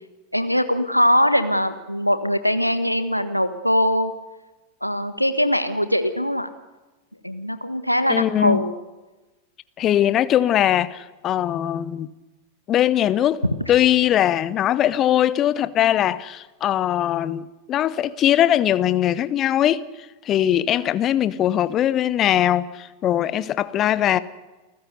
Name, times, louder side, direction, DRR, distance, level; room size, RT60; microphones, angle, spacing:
voice 1, 0.3-4.1 4.8-6.5 7.2-8.7, equal, 90° left, 1.4 m, -21 dB
voice 2, 8.1-8.6 9.8-12.1 12.7-13.4 13.7-19.8 20.2-24.2, left 11 dB, 30° left, 0.9 m, -20 dB
28.5 x 15.5 x 6.8 m
figure-of-eight pair, 90°, 0 cm